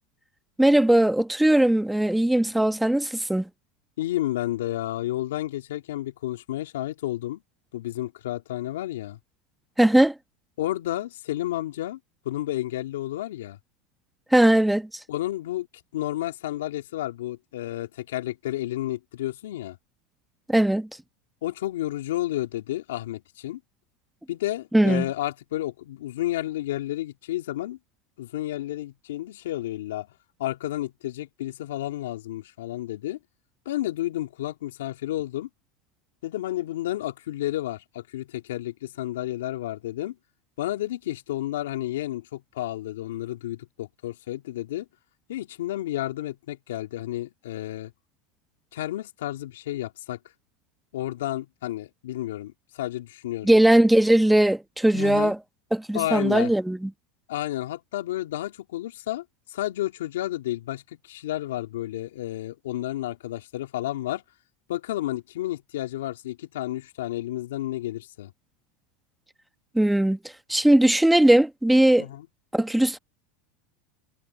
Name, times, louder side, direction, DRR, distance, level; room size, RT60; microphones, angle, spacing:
voice 1, 0.6-3.5 9.8-10.1 14.3-14.9 20.5-20.9 24.7-25.1 53.4-55.4 55.7-56.9 69.7-70.2 70.5-72.0 72.5-73.0, right 1 dB, 5° right, 1.4 m, -19 dB
voice 2, 4.0-7.4 7.7-9.2 10.6-12.0 12.2-13.6 15.1-15.7 15.9-19.8 21.4-23.6 24.3-27.8 28.2-30.1 30.4-33.2 33.7-35.5 36.2-40.1 40.6-44.9 45.3-47.9 48.7-50.2 50.9-53.5 54.9-55.3 55.9-56.5 57.3-64.2 64.7-68.3 72.0-72.3, left 14 dB, 80° left, 2.3 m, -31 dB
hypercardioid pair, 95°, 0 cm